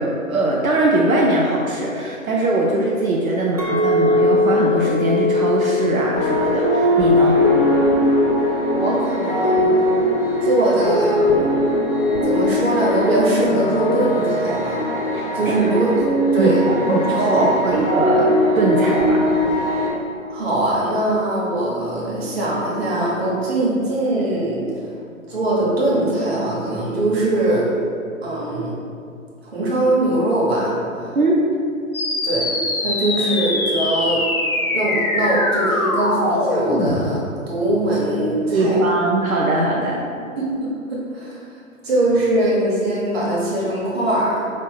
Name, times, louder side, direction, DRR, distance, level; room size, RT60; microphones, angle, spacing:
voice 1, 0.0-7.4 15.1-15.6 16.4-16.5 16.9-18.3 18.5-19.2 31.1-31.4 38.5-40.0, right 2 dB, 80° right, -3 dB, 0.6 m, -20 dB
Chink clink, 3.6-7.9 8.3-8.7, left 2 dB, 30° right, 0.4 m, -22 dB
sound 1, 6.2-19.9, left 1 dB, 40° left, 0.9 m, -20 dB
voice 2, 8.7-9.7 10.4-11.5 12.2-14.8 15.3-15.9 16.3-16.6 16.9-17.6 20.3-24.6 25.3-27.6 28.2-28.7 29.5-31.1 32.2-32.5 32.8-34.2 34.7-38.8 40.4-41.4 41.8-44.4, right 1 dB, 45° right, -5 dB, 1.3 m, -21 dB
sound 2, 31.9-36.9, left 2 dB, 85° left, 0.8 m, -22 dB
5.2 x 2.6 x 3.4 m, 2.5 s
figure-of-eight pair, 125°, 41 cm